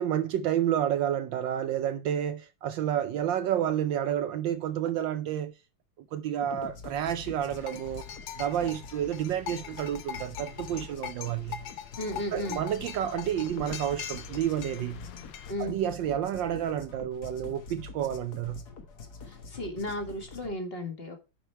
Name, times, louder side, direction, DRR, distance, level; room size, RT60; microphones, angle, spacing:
voice 1, 0.0-5.5 6.1-8.0 8.4-11.6 12.3-15.0 15.6-18.6, right 10 dB, 70° right, 1.2 m, -30 dB
sound 1, 6.4-20.5, left 4 dB, 50° left, 1.7 m, -46 dB
sound 2, 7.6-15.5, left 9 dB, 70° left, 1.5 m, -42 dB
voice 2, 12.0-12.6 15.5-15.7 19.2-21.2, left 1 dB, 30° left, 1.8 m, -34 dB
10.0 x 5.1 x 4.5 m
omnidirectional pair, 2.3 m